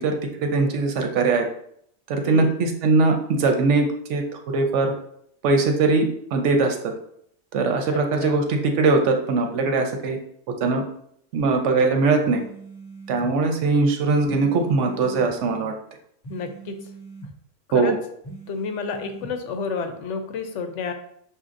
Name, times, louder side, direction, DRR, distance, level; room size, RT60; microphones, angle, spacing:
voice 1, 0.0-1.4 2.1-4.2 4.5-4.9 5.4-6.9 7.5-10.2 10.6-10.8 11.3-12.4 13.1-15.7 17.7-18.0, right 3 dB, 85° right, 4 dB, 1.0 m, -21 dB
voice 2, 2.2-2.6 7.9-8.3 16.3-16.8 17.7-17.9 18.5-20.9, left 5 dB, 80° left, 7 dB, 0.9 m, -30 dB
sound 1, 12.2-13.3 14.2-15.3 16.2-17.3 18.2-19.3, right 3 dB, 30° left, 0.5 m, -41 dB
5.6 x 2.8 x 2.5 m, 0.68 s
omnidirectional pair, 1.2 m